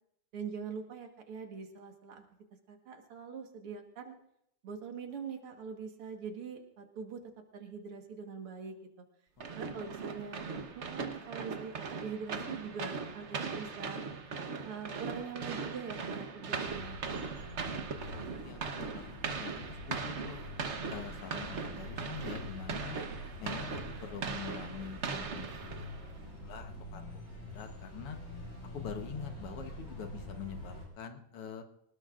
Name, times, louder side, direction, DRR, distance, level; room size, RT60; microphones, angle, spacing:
voice 1, 0.3-2.2 2.7-4.1 4.6-7.2 7.5-8.8 9.5-14.0 14.6-17.7, right 6 dB, 80° right, 4 dB, 2.5 m, -43 dB
voice 2, 9.4-10.2 18.3-20.4 20.9-23.0 23.4-27.2 27.5-28.2 28.7-31.6, left 7 dB, 90° left, 6 dB, 2.2 m, -45 dB
sound 1, 9.4-26.2, right 5 dB, 45° right, 1.0 m, -39 dB
sound 2, 16.6-30.9, left 1 dB, 40° left, 7.2 m, -45 dB
24.5 x 19.0 x 2.5 m, 0.75 s
omnidirectional pair, 2.4 m